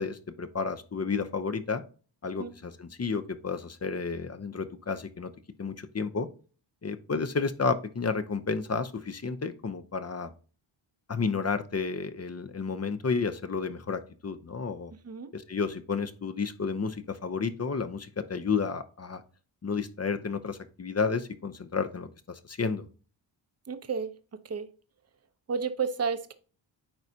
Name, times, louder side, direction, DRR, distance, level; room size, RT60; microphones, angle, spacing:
voice 1, 0.0-1.8 2.2-5.3 5.6-6.3 6.8-10.3 11.1-14.9 15.3-19.2 19.6-22.9, left 5 dB, 30° left, 10 dB, 0.7 m, -31 dB
voice 2, 23.7-24.1 24.4-24.7 25.5-26.3, right 5 dB, 30° right, 11 dB, 0.7 m, -31 dB
8.9 x 4.8 x 2.7 m, 0.38 s
wide cardioid pair, 90°, 48 cm